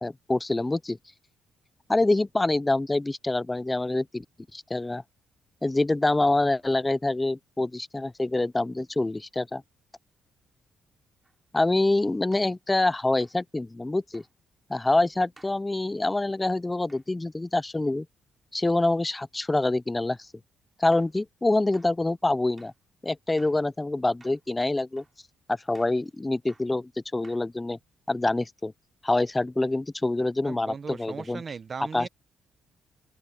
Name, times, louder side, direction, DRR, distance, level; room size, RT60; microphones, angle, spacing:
voice 1, 0.0-1.0 1.9-4.2 4.5-5.0 5.6-9.6 11.5-14.2 14.7-18.1 18.5-20.2 20.8-22.7 23.0-25.0 25.5-27.8 28.1-28.7 29.0-31.4 31.9-32.1, left 2 dB, 15° left, 0.7 m, -26 dB
sound 1, 11.2-11.4 12.3-12.6 13.2-13.4 14.1-14.3 15.4-15.6 16.9-17.1 20.2-20.3 20.9-21.2 21.7-21.9 22.6-22.8 23.4-23.6 24.2-24.5 25.0-25.2 25.7-26.0 26.5-26.7 27.2-27.7, right 3 dB, 25° right, 3.5 m, -57 dB
voice 2, 30.4-32.1, right 5 dB, 40° right, 0.9 m, -38 dB
open air
cardioid pair, 90°, 0 cm